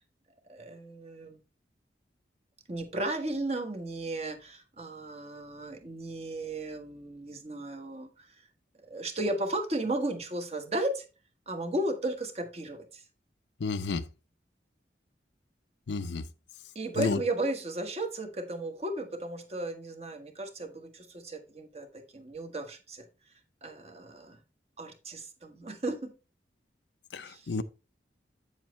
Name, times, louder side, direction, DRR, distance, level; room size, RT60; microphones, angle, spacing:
voice 1, 0.5-1.4 2.7-8.4 8.8-11.0 11.5-13.0 16.7-23.1 23.6-24.4 24.8-26.1 27.2-27.5, right 1 dB, 35° right, 1.3 m, -35 dB
voice 2, 13.6-14.1 15.9-16.3 17.0-17.2 27.1-27.6, left 4 dB, 75° left, 0.5 m, -31 dB
8.0 x 7.3 x 3.1 m
head